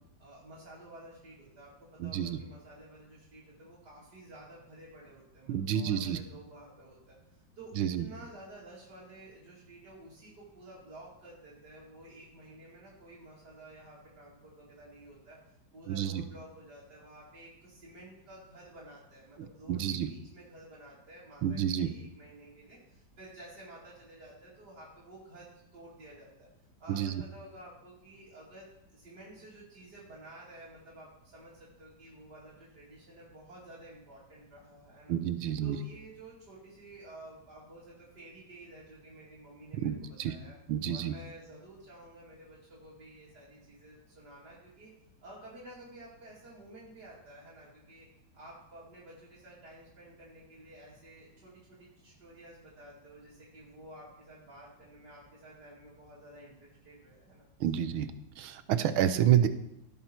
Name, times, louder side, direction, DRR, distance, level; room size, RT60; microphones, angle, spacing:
voice 1, 0.2-26.5 26.8-35.2 35.6-40.5 40.9-44.9 45.2-48.1 48.3-57.5, right 1 dB, 55° right, -9 dB, 2.9 m, -52 dB
voice 2, 2.0-2.4 5.5-6.2 7.8-8.0 15.9-16.2 19.7-20.1 21.4-21.9 26.9-27.2 35.1-35.8 39.8-40.3 40.7-41.1 57.6-58.1 58.4-59.5, right 10 dB, 85° right, 11 dB, 1.6 m, -29 dB
17.0 x 5.7 x 4.4 m, 0.83 s
omnidirectional pair, 2.2 m